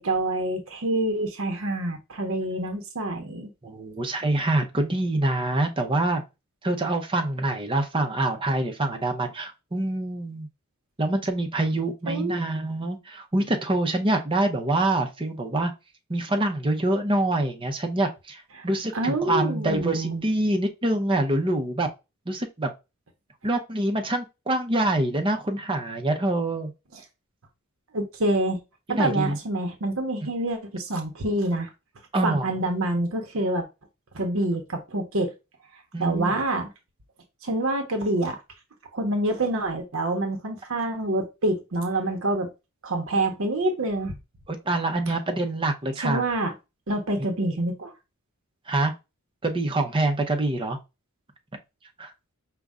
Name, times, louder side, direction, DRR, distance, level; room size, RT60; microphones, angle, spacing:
voice 1, 0.0-3.5 12.1-12.4 18.6-18.7 18.9-20.2 26.9-27.0 27.9-28.6 28.9-31.7 32.2-33.7 34.1-35.3 36.0-36.7 37.4-38.4 38.9-42.5 42.8-44.1 46.0-46.5 46.9-47.9, right 1 dB, 65° right, 0.9 m, -26 dB
voice 2, 3.6-6.2 6.6-10.5 11.0-15.7 16.1-21.9 22.3-22.7 23.4-26.7 28.9-29.4 32.1-32.5 35.9-36.3 44.5-46.2 48.7-48.9 49.4-50.8 52.0-52.1, right 2 dB, 25° right, 0.7 m, -25 dB
5.2 x 2.3 x 3.6 m
head